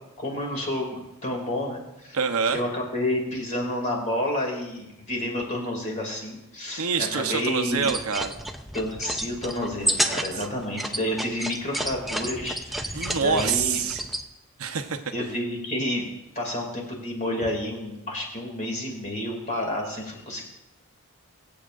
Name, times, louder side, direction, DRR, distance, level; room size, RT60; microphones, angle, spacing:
voice 1, 0.2-2.2 2.5-7.9 8.7-13.8 15.1-16.1 16.3-20.4, left 1 dB, 30° left, 0 dB, 2.4 m, -30 dB
voice 2, 2.1-2.6 6.8-8.3 10.1-10.2 12.9-14.0 14.6-15.0, right 6 dB, 75° right, 5 dB, 0.8 m, -26 dB
sound 1, 7.7-14.2, right 1 dB, ahead, 0.4 m, -31 dB
23.0 x 7.8 x 2.5 m, 0.89 s
head